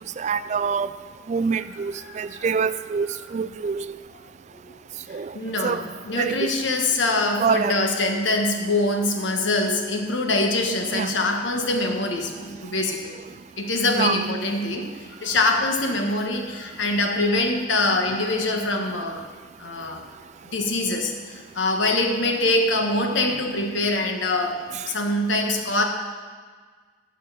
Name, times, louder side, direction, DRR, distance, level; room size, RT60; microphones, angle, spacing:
voice 1, 0.2-0.9 1.3-4.0 5.1-5.4 5.6-5.8 6.2-6.5 7.4-7.8 10.9-11.1 13.9-14.3 24.7-24.8, right 6 dB, 40° right, 14 dB, 0.3 m, -25 dB
voice 2, 5.1-13.2 13.6-19.2 19.6-20.0 20.5-25.8, left 2 dB, 90° left, 3 dB, 1.3 m, -24 dB
9.2 x 6.6 x 6.9 m, 1.5 s
head